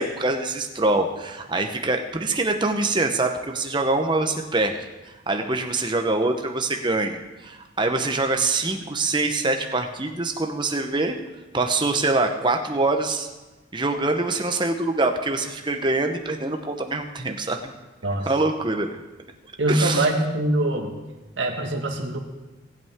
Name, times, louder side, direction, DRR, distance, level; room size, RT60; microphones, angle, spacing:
voice 1, 0.0-11.2 11.5-13.3 13.7-17.6 18.3-18.9 19.7-20.1, right 2 dB, 25° right, 5 dB, 0.9 m, -24 dB
voice 2, 19.6-20.9 21.4-22.2, right 1 dB, 65° right, 0 dB, 1.8 m, -23 dB
18.5 x 8.3 x 3.6 m, 1.1 s
head